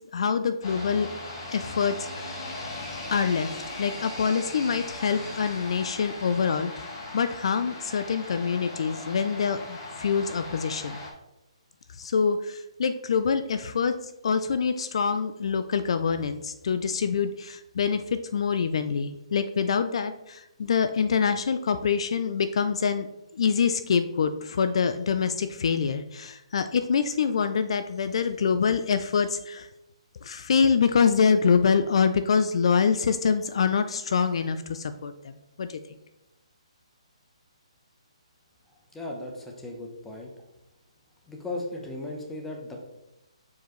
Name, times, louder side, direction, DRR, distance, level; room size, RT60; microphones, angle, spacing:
voice 1, 0.1-1.1 1.5-2.4 3.1-6.9 7.1-11.0 11.9-14.0 14.2-23.1 23.3-29.7 30.2-35.3 35.6-35.8, left 6 dB, 55° left, 10 dB, 0.4 m, -25 dB
sound 1, 0.6-11.1, left 2 dB, 35° left, 1.4 m, -38 dB
voice 2, 38.9-40.3 41.3-42.8, left 2 dB, 5° left, 0 dB, 0.8 m, -36 dB
6.8 x 4.7 x 3.1 m, 0.91 s
hypercardioid pair, 160°, 3 cm